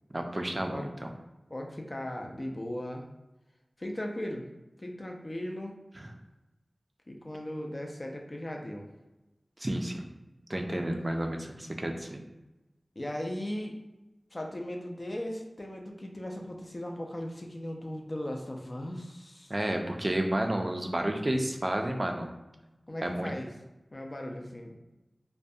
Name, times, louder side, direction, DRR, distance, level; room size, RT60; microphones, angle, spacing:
voice 1, 0.1-1.1 6.0-6.1 9.6-10.1 10.5-12.2 19.5-22.3 23.0-23.3, right 1 dB, 35° right, 3 dB, 0.3 m, -31 dB
voice 2, 1.5-3.0 3.8-4.5 4.8-5.8 7.1-8.9 10.7-10.8 13.0-13.8 14.3-19.5 22.9-23.5 23.9-24.7, left 1 dB, 45° left, 1 dB, 0.4 m, -37 dB
2.2 x 2.1 x 2.6 m, 1.0 s
wide cardioid pair, 50°, 0 cm